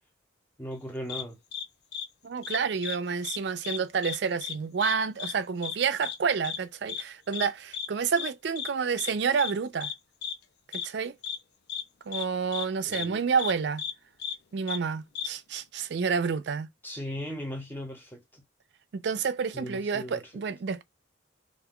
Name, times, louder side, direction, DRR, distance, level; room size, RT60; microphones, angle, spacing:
voice 1, 0.6-1.4 12.8-13.2 16.8-18.4 19.5-20.4, equal, 10° left, 0.7 m, -38 dB
sound 1, 1.1-1.2 1.5-1.6 1.9-2.0 2.4-3.0 3.2-3.4 3.6-4.2 4.4-4.5 4.8-4.9 5.2-5.3 5.6-5.8 6.0-6.2 6.4-6.6 6.9-7.0 7.3-7.5 7.7-7.9 8.2-8.3 8.6-8.7 9.0-9.1 9.4-9.5 9.8-9.9 10.2-10.3 10.7-10.9 11.2-11.4 11.7-11.8 12.1-12.2 12.5-12.7 12.9-13.1 13.4-13.5 13.8-13.9 14.2-14.3 14.7-14.8 15.1-15.3, left 8 dB, 55° left, 0.4 m, -34 dB
voice 2, 2.2-9.9 10.7-11.2 12.1-13.8 14.5-16.7 18.9-20.8, right 6 dB, 60° right, 0.4 m, -29 dB
2.5 x 2.2 x 3.5 m
head